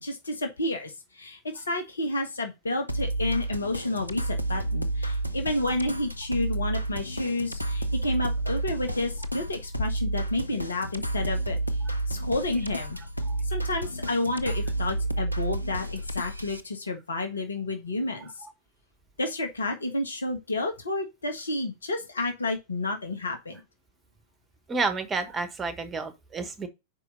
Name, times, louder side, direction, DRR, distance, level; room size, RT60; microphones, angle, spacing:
voice 1, 0.0-11.6 12.1-13.0 13.5-18.3 19.2-23.6, left 2 dB, 70° left, 1.5 m, -30 dB
sound 1, 2.9-16.6, right 2 dB, 90° right, 0.7 m, -30 dB
voice 2, 24.7-26.7, right 4 dB, 15° right, 1.2 m, -30 dB
5.3 x 4.8 x 5.3 m
figure-of-eight pair, 95°, 0 cm